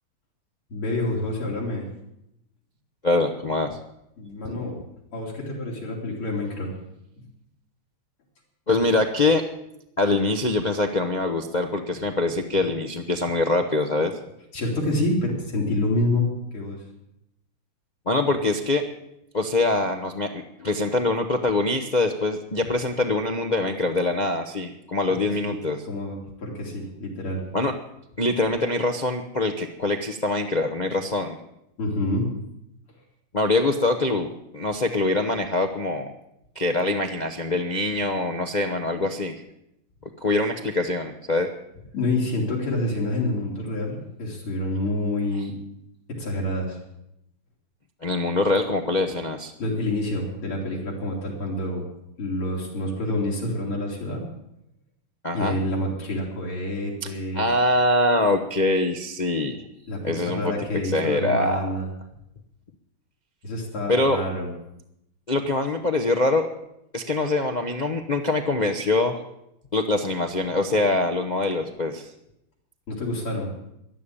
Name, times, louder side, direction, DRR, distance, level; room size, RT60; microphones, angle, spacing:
voice 1, 0.7-1.9 4.2-4.8 5.1-6.7 7.2-7.3 14.5-16.3 16.5-16.8 25.2-25.6 25.9-27.4 31.8-32.3 41.9-45.6 46.1-46.8 49.6-51.8 52.2-54.2 55.3-57.5 59.9-61.9 63.4-64.5 72.9-73.5, left 1 dB, 75° left, -3 dB, 4.1 m, -27 dB
voice 2, 3.0-3.8 4.4-4.5 8.7-9.4 10.0-14.1 18.1-18.8 19.3-25.8 27.5-27.7 28.2-31.4 33.3-34.3 34.5-36.1 36.5-39.3 40.2-41.5 48.0-49.5 55.2-55.6 57.0-57.1 57.3-59.6 60.0-60.5 60.9-61.6 63.9-64.2 65.3-66.5 66.9-69.2 69.7-72.1, left 2 dB, 60° left, 4 dB, 0.4 m, -24 dB
13.5 x 11.5 x 8.7 m, 0.82 s
omnidirectional pair, 2.4 m